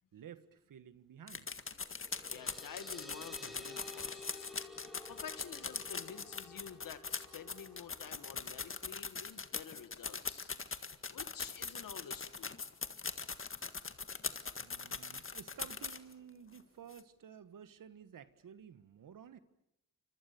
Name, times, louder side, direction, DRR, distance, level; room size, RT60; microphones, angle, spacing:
voice 1, 0.1-1.5 14.6-19.4, right 8 dB, 75° right, 13 dB, 1.6 m, -53 dB
sound 1, 1.3-16.1 16.5-16.6 16.9-17.0, left 5 dB, 40° left, 1.8 m, -41 dB
sound 2, 1.8-9.0, left 2 dB, ahead, 4.2 m, -53 dB
voice 2, 2.3-4.5 5.1-10.5 11.1-12.5, left 7 dB, 80° left, 10 dB, 2.2 m, -50 dB
29.0 x 26.0 x 7.1 m, 0.81 s
cardioid pair, 65°, 33 cm